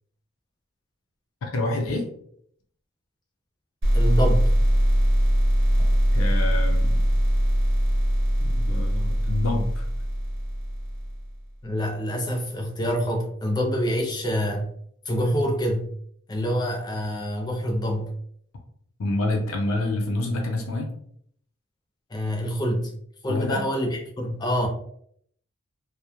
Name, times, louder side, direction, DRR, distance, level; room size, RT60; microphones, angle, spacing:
voice 1, 1.4-2.1 6.1-7.1 8.4-9.9 19.0-20.9 23.3-23.6, left 2 dB, 90° left, 2 dB, 0.5 m, -27 dB
sound 1, 3.8-11.3, equal, 60° right, 0.8 m, -22 dB
voice 2, 3.9-4.4 11.6-14.7 15.1-15.9 16.3-18.1 22.1-22.9 23.2-24.7, equal, 20° left, 2 dB, 0.4 m, -26 dB
2.9 x 2.1 x 2.3 m, 0.65 s
head